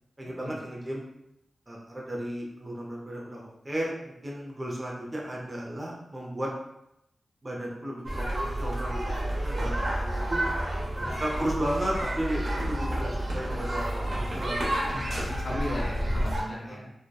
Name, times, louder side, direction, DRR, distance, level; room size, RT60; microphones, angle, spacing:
voice 1, 0.2-1.1 1.7-6.5 7.4-10.4 11.2-14.9 15.5-15.8 16.5-16.8, right 1 dB, 25° right, -3 dB, 0.5 m, -34 dB
sound 1, 8.0-16.4, right 1 dB, 60° right, 0.8 m, -30 dB
voice 2, 14.9-16.9, left 1 dB, 60° left, -1 dB, 0.5 m, -38 dB
2.7 x 2.1 x 2.2 m, 0.83 s
wide cardioid pair, 85°, 0 cm